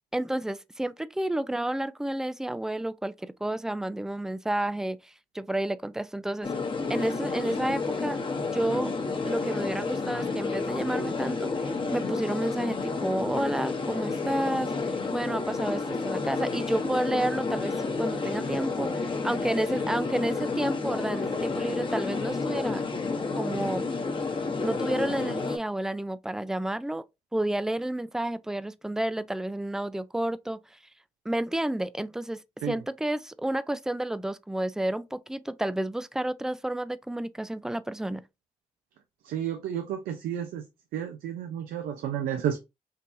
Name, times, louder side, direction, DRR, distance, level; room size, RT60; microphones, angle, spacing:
voice 1, 0.1-6.5 6.9-8.2 8.5-9.0 9.3-22.8 23.4-23.9 24.6-27.0 27.3-30.6 31.3-32.4 32.6-38.2, right 1 dB, 5° right, 0.3 m, -30 dB
sound 1, 6.4-25.6, left 4 dB, 35° left, 0.9 m, -30 dB
voice 2, 39.2-40.6 40.9-42.6, right 9 dB, 80° right, 0.5 m, -31 dB
3.7 x 2.8 x 2.5 m
supercardioid pair, 55°, 15 cm